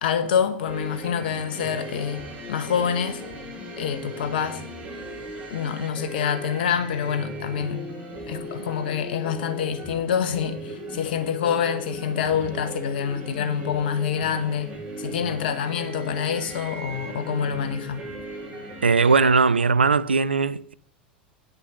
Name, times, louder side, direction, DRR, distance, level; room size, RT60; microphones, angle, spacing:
voice 1, 0.0-3.2 3.8-4.6 5.5-7.9 8.3-18.0, left 8 dB, 65° left, 1.3 m, -26 dB
sound 1, 0.6-19.2, right 1 dB, 25° right, 4.7 m, -37 dB
voice 2, 18.8-20.7, right 4 dB, 85° right, 0.4 m, -19 dB
9.5 x 6.5 x 6.2 m
figure-of-eight pair, 85°, 6 cm